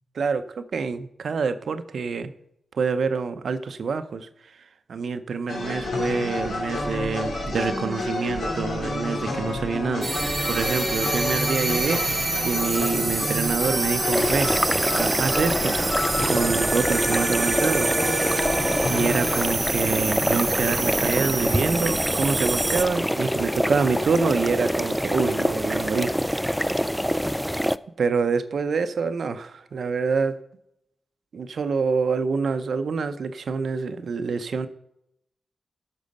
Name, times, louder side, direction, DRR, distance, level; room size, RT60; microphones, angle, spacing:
voice 1, 0.1-2.3 2.7-14.5 14.9-18.0 18.4-18.6 18.9-26.1 27.1-27.2 28.0-30.4 31.3-34.7, right 5 dB, 75° right, 11 dB, 0.7 m, -26 dB
sound 1, 5.5-19.5, left 2 dB, 85° left, 2.8 m, -29 dB
sound 2, 10.0-22.8, right 2 dB, 30° right, 0.8 m, -27 dB
sound 3, 14.1-27.8, equal, ahead, 0.3 m, -26 dB
11.5 x 6.3 x 5.3 m, 0.80 s
cardioid pair, 70°, 0 cm